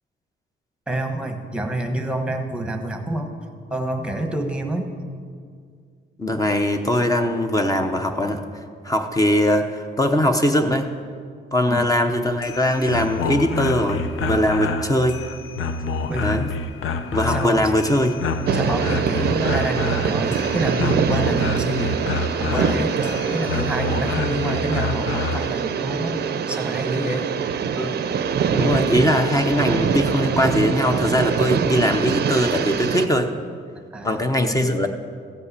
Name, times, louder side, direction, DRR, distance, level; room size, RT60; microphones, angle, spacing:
voice 1, 0.9-3.4 3.7-5.0 11.7-11.9 16.1-16.4 17.3-17.7 18.5-22.1 22.4-27.3 27.6-27.7 33.7-34.2, right 1 dB, 5° right, 4 dB, 1.1 m, -27 dB
voice 2, 6.2-8.4 8.8-10.9 11.5-15.2 16.2-16.5 17.1-18.1 27.8-27.9 28.5-33.3 34.0-34.9, left 1 dB, 15° left, 6 dB, 0.7 m, -21 dB
sound 1, 12.3-25.5, left 3 dB, 80° left, 0.7 m, -28 dB
sound 2, 18.5-33.1, right 6 dB, 50° right, 0.5 m, -24 dB
14.5 x 5.4 x 8.2 m, 2.1 s
cardioid pair, 135°, 21 cm